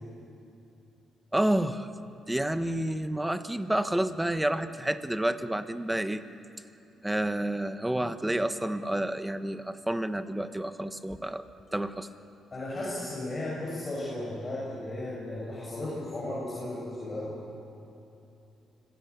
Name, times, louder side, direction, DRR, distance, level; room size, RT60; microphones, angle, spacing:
voice 1, 1.3-1.9 2.3-6.2 7.0-11.4 11.7-12.1, right 1 dB, 10° right, 10 dB, 1.1 m, -29 dB
voice 2, 12.5-17.3, left 1 dB, 30° left, -6 dB, 6.4 m, -35 dB
25.5 x 16.5 x 8.3 m, 2.8 s
cardioid pair, 90°, 0 cm